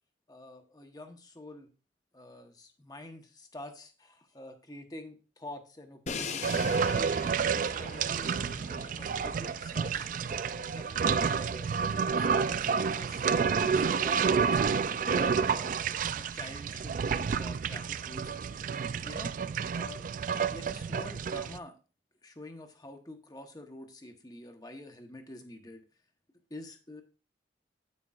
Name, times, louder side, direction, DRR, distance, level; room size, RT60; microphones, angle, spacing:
voice 1, 0.3-1.7 2.1-7.1 7.5-10.1 10.5-11.7 12.2-14.6 15.0-15.8 16.2-18.3 19.0-19.3 19.7-20.1 20.5-21.8 22.2-25.8 26.5-27.0, left 1 dB, 20° left, 5 dB, 1.1 m, -47 dB
Crash cymbal, 6.1-12.0, left 5 dB, 40° left, 0.6 m, -43 dB
sound 1, 6.4-21.6, right 6 dB, 45° right, 0.3 m, -30 dB
9.7 x 9.1 x 2.4 m, 0.35 s
head